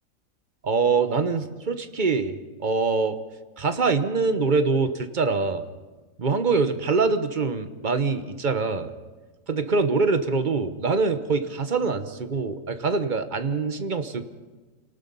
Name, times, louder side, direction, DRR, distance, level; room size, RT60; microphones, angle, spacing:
voice 1, 0.6-3.2 3.6-5.6 6.2-8.9 9.5-14.3, right 4 dB, 35° right, 9 dB, 1.2 m, -24 dB
28.0 x 18.5 x 5.5 m, 1.3 s
omnidirectional pair, 1.4 m